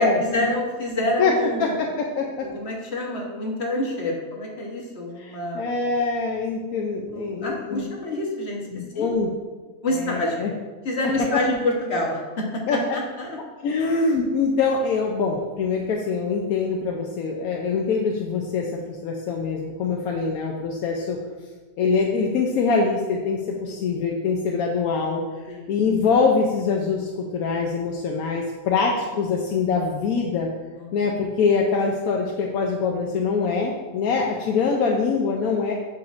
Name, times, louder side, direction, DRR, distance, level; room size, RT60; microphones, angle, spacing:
voice 1, 0.0-1.8 2.4-5.7 7.1-9.1 9.8-10.5 10.8-13.4 13.7-13.8 23.7-23.8 25.5-25.6 30.8-30.9, left 1 dB, 50° left, -1 dB, 1.4 m, -27 dB
voice 2, 1.6-2.5 5.2-7.8 8.7-9.3 9.9-10.5 11.3-11.4 12.7-12.8 13.6-21.2 21.8-30.5 30.9-35.7, left 4 dB, 80° left, 0 dB, 1.1 m, -24 dB
8.6 x 6.4 x 2.6 m, 1.3 s
omnidirectional pair, 1.5 m